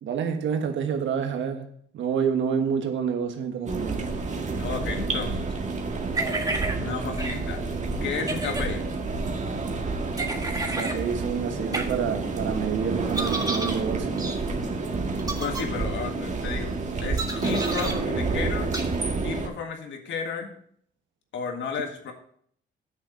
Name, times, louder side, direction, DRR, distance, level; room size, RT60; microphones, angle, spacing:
voice 1, 0.0-4.1 10.7-14.3, right 7 dB, 75° right, 1.4 m, -28 dB
sound 1, 3.7-19.5, right 3 dB, 35° right, 1.7 m, -29 dB
voice 2, 4.6-5.5 6.8-7.6 8.0-8.8 15.3-18.7 19.2-20.5 21.3-22.1, left 6 dB, 70° left, 1.8 m, -33 dB
sound 2, 6.1-6.8 7.2-7.4 8.2-8.6 10.2-11.0 11.7-11.8 13.1-13.8 14.2-14.4 15.2-15.6 17.2-17.9 18.7-18.8, right 2 dB, 20° right, 1.7 m, -30 dB
8.2 x 6.6 x 5.6 m
cardioid pair, 90°, 20 cm